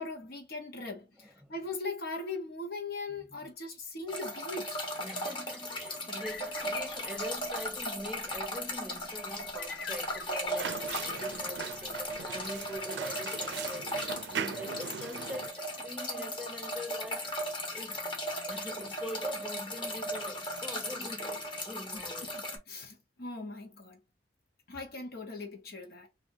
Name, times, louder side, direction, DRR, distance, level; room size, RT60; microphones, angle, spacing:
voice 1, 0.0-4.8 21.9-24.0 24.7-26.1, left 3 dB, 60° left, 1.0 m, -40 dB
voice 2, 1.2-1.5 3.2-3.5 5.0-13.9 14.3-17.3 17.7-18.0 18.4-22.3, equal, 5° right, 0.4 m, -44 dB
sound 1, 4.1-22.6, equal, 30° left, 0.9 m, -37 dB
sound 2, 6.2-11.1 11.4-12.4, left 5 dB, 85° left, 0.7 m, -46 dB
sound 3, 10.5-15.5, right 7 dB, 90° right, 0.4 m, -40 dB
2.7 x 2.6 x 3.7 m
head